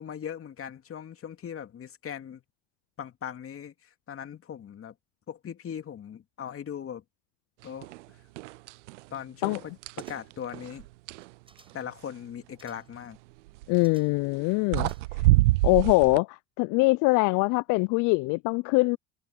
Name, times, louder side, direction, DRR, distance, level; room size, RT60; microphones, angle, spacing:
voice 1, 0.0-2.4 3.0-4.9 5.3-7.0 7.6-7.9 9.1-10.9 11.7-13.2, left 8 dB, 40° left, 2.6 m, -39 dB
sound 1, 7.8-8.0 8.4-9.0 9.4-11.3 13.5-13.8 14.4-14.5 14.7-16.2, right 20 dB, 85° right, 0.5 m, -26 dB
sound 2, 10.0-10.5 11.1-11.9 12.6-13.0 13.8-14.3 14.7-15.4 15.7-15.8, right 3 dB, 15° right, 6.9 m, -59 dB
voice 2, 13.7-14.9 15.6-19.0, left 26 dB, 60° left, 0.5 m, -23 dB
hypercardioid pair, 80°, 35 cm